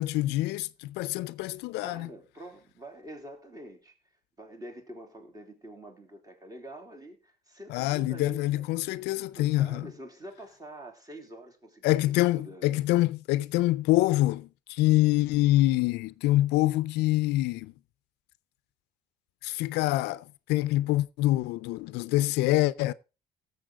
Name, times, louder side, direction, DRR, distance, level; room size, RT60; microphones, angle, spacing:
voice 1, 0.0-2.1 7.7-9.9 11.8-17.7 19.4-20.2 20.5-22.9, left 17 dB, 90° left, 0.5 m, -25 dB
voice 2, 1.8-4.0 4.4-8.7 9.3-12.8, right 1 dB, 20° right, 3.0 m, -46 dB
18.0 x 7.2 x 3.6 m
cardioid pair, 110°, 17 cm